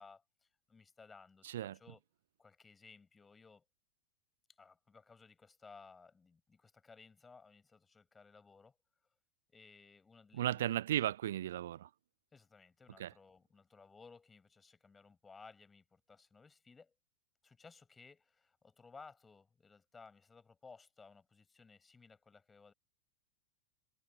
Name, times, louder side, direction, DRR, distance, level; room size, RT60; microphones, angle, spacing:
voice 1, 0.0-1.5 1.7-2.0 2.4-3.6 4.5-8.8 9.5-11.0 12.3-16.9 17.4-22.7, left 4 dB, 15° left, 7.7 m, -59 dB
voice 2, 1.4-1.8 10.3-11.9 13.0-13.1, right 12 dB, 60° right, 1.2 m, -35 dB
figure-of-eight pair, 90°, 0 cm